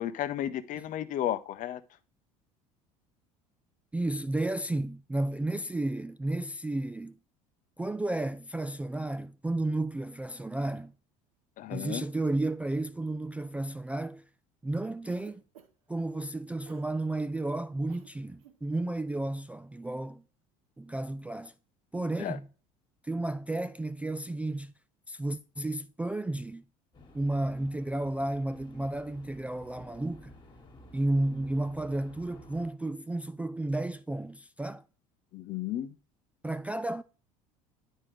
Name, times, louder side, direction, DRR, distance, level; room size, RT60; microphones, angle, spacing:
voice 1, 0.0-1.8 11.6-12.1 22.2-22.4 35.3-35.9, left 12 dB, 45° left, 0.7 m, -33 dB
voice 2, 3.9-7.1 7.8-10.9 11.7-14.2 14.6-15.4 15.9-20.2 20.8-21.5 21.9-22.5 23.0-24.7 25.1-26.6 27.1-30.3 30.9-34.8 36.4-37.0, right 2 dB, 5° right, 0.3 m, -32 dB
Cough, 15.1-15.9 16.7-16.9 17.9-18.1 18.4-18.6, right 9 dB, 75° right, 1.1 m, -55 dB
sound 1, 26.9-32.7, left 2 dB, 25° left, 1.7 m, -53 dB
9.9 x 4.5 x 3.3 m
hypercardioid pair, 65°, 18 cm